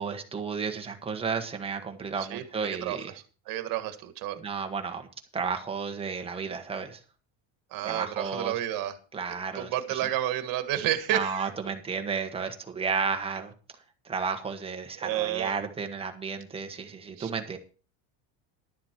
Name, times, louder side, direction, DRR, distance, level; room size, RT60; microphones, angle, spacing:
voice 1, 0.0-3.1 4.3-5.1 5.3-7.0 7.8-8.5 9.1-10.0 11.1-13.5 14.0-17.6, right 5 dB, 10° right, 4 dB, 1.2 m, -32 dB
voice 2, 2.2-3.0 3.5-4.4 7.7-9.0 9.5-11.5 15.0-15.5 17.2-17.3, right 13 dB, 45° right, 10 dB, 1.6 m, -30 dB
12.0 x 7.4 x 5.9 m, 0.37 s
cardioid pair, 170°, 46 cm